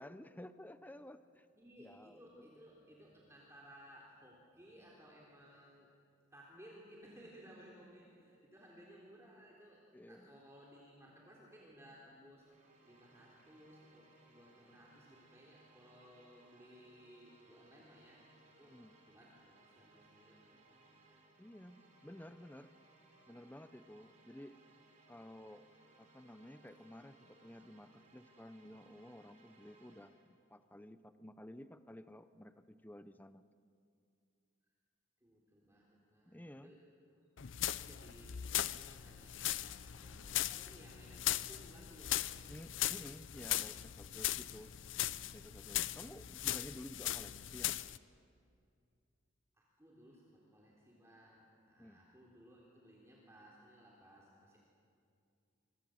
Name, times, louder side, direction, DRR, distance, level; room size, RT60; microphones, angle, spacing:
voice 1, 0.0-1.5 1.8-2.5 9.9-10.4 18.7-18.9 21.4-22.7 23.3-24.6 25.1-25.7 26.0-33.5 36.3-36.7 42.5-44.8 45.3-47.8 51.8-52.0, left 1 dB, 10° left, 11 dB, 0.6 m, -53 dB
voice 2, 1.5-5.9 6.3-9.8 10.1-12.5 12.8-18.8 19.1-20.5 35.2-36.8 37.2-37.3 37.8-38.4 38.7-42.6 49.5-54.6, equal, 15° right, -4 dB, 3.5 m, -59 dB
sound 1, 12.4-30.3, right 2 dB, 35° right, 4.1 m, -66 dB
sound 2, 37.4-48.0, left 13 dB, 65° left, 0.6 m, -39 dB
26.5 x 24.0 x 7.8 m, 2.4 s
head